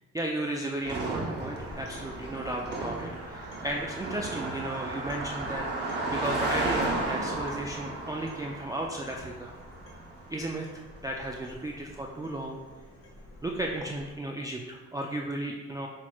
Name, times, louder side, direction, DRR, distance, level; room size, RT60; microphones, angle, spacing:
voice 1, 0.1-9.5 10.3-12.6 13.4-15.9, right 1 dB, 10° right, -1 dB, 0.3 m, -34 dB
Car passing by, 0.8-10.4, right 2 dB, 35° right, 0.9 m, -34 dB
sound 1, 1.6-14.1, left 1 dB, 45° left, 1.3 m, -51 dB
5.9 x 2.9 x 2.3 m, 1.2 s
cardioid pair, 90°, 30 cm